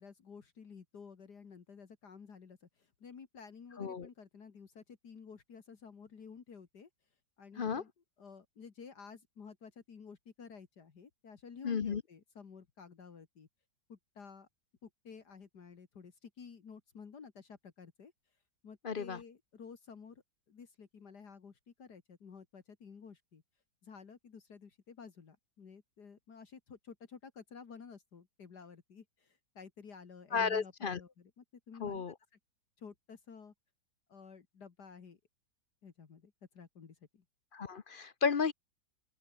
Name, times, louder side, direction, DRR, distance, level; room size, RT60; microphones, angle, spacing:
voice 1, 0.0-6.9 7.4-7.9 8.2-13.5 13.9-14.5 14.8-18.1 18.6-23.4 23.8-32.0 32.8-33.5 34.1-35.2 35.8-37.2, left 6 dB, 60° left, 2.4 m, -52 dB
voice 2, 3.8-4.1 7.6-7.8 11.6-12.0 18.8-19.2 30.3-31.0 31.8-32.1 37.5-38.5, left 5 dB, 45° left, 0.7 m, -33 dB
open air
omnidirectional pair, 2.0 m